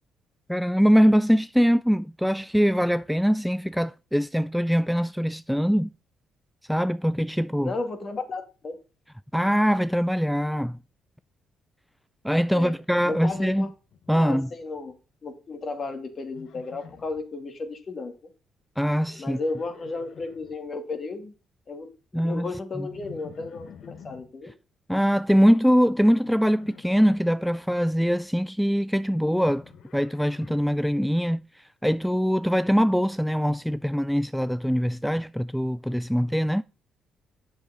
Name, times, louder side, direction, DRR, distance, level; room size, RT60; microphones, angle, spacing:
voice 1, 0.5-5.9 6.7-7.7 9.3-10.8 12.2-13.7 14.1-14.5 18.8-19.4 22.1-22.5 22.8-22.9 24.9-29.6 29.9-36.6, equal, ahead, 0.3 m, -23 dB
voice 2, 7.6-8.7 12.5-12.7 13.0-13.7 14.2-14.9 15.2-18.1 19.2-21.3 21.7-21.9 22.1-24.5, left 3 dB, 45° left, 2.4 m, -34 dB
Livestock farm animals working animals, 12.9-14.2 14.4-15.0 16.3-17.2 18.8-20.6 22.9-24.3 26.2-27.4 29.1-30.9, left 7 dB, 70° left, 1.3 m, -49 dB
7.8 x 6.7 x 3.8 m
cardioid pair, 90°, 0 cm